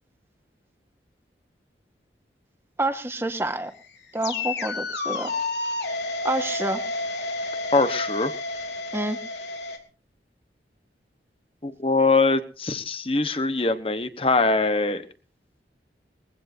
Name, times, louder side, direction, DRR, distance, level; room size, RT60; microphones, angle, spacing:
voice 1, 2.8-3.7 4.1-5.3 6.2-6.8 8.9-9.2, right 1 dB, 15° right, 7 dB, 1.6 m, -28 dB
sound 1, 3.4-9.8, left 3 dB, 75° left, 3.3 m, -30 dB
voice 2, 7.7-8.3 11.6-15.1, left 3 dB, 30° left, 10 dB, 1.3 m, -22 dB
22.0 x 16.0 x 2.8 m, 0.37 s
head